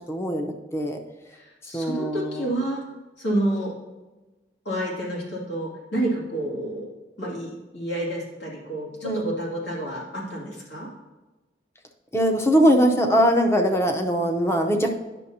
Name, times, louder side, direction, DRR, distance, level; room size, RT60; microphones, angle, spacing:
voice 1, 0.1-1.0 1.7-2.3 9.0-9.2 12.1-14.9, equal, 15° left, 3 dB, 0.7 m, -21 dB
voice 2, 1.3-2.8 3.2-3.7 4.6-6.9 7.2-10.9, right 1 dB, 90° left, -4 dB, 2.4 m, -29 dB
10.0 x 6.3 x 2.8 m, 1.2 s
head